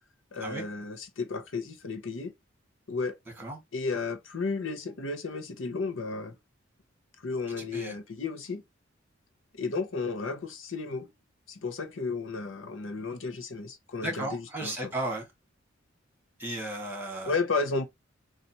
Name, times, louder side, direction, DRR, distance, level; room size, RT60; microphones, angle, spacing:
voice 1, 0.3-2.3 2.9-3.2 3.7-6.4 7.2-8.6 9.5-11.1 11.5-14.7 17.2-17.8, left 4 dB, 75° left, 0.7 m, -33 dB
voice 2, 7.6-8.0 14.0-15.3 16.4-17.4, right 1 dB, 10° right, 2.0 m, -35 dB
4.0 x 2.5 x 4.2 m
head